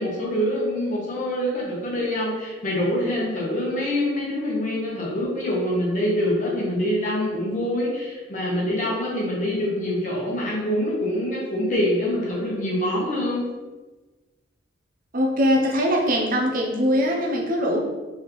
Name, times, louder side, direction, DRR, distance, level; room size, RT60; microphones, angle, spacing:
voice 1, 0.0-13.5, left 1 dB, 45° left, -4 dB, 1.3 m, -25 dB
voice 2, 15.1-17.8, equal, 50° right, -1 dB, 0.8 m, -21 dB
4.2 x 3.7 x 3.2 m, 1.2 s
head